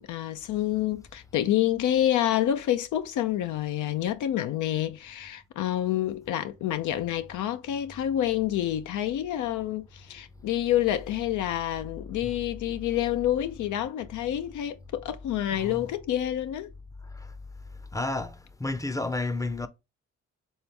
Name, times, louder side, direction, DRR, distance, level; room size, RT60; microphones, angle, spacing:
voice 1, 0.1-16.7, left 12 dB, 75° left, 0.6 m, -28 dB
voice 2, 17.9-19.7, left 2 dB, 10° left, 0.6 m, -30 dB
4.5 x 3.4 x 3.4 m
cardioid pair, 90°, 30 cm